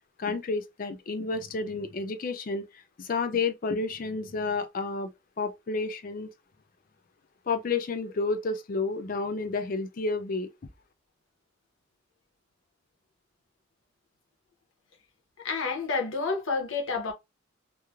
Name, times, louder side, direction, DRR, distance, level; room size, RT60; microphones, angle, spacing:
voice 1, 0.2-2.6 3.0-5.1 5.4-6.3 7.5-10.5, left 4 dB, 45° left, 0.4 m, -30 dB
voice 2, 15.4-17.1, left 4 dB, 80° left, 0.7 m, -29 dB
3.0 x 2.0 x 2.3 m
head